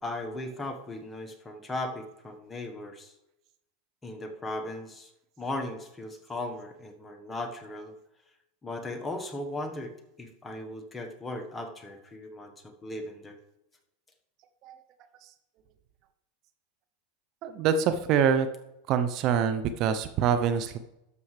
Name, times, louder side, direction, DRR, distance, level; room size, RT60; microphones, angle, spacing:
voice 1, 0.0-3.1 4.0-5.1 5.4-7.9 8.6-9.9 10.2-13.4, left 2 dB, 15° left, 4 dB, 1.3 m, -37 dB
voice 2, 17.4-18.5 18.9-20.8, right 7 dB, 50° right, 10 dB, 0.7 m, -25 dB
12.0 x 7.0 x 3.3 m, 0.89 s
hypercardioid pair, 105°, 0 cm